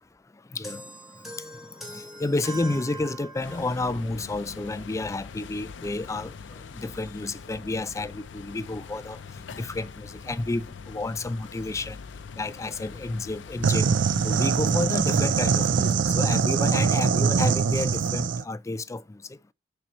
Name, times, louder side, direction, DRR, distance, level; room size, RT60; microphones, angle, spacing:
sound 1, 0.6-3.8, right 1 dB, ahead, 2.5 m, -41 dB
voice 1, 1.9-6.3 6.7-9.2 9.6-12.0 12.4-14.0 14.2-19.0 19.3-19.4, left 2 dB, 15° left, 0.3 m, -30 dB
sound 2, 3.4-15.9, left 5 dB, 90° left, 0.5 m, -43 dB
sound 3, 13.6-18.4, right 5 dB, 90° right, 0.4 m, -23 dB
8.7 x 4.4 x 3.0 m
head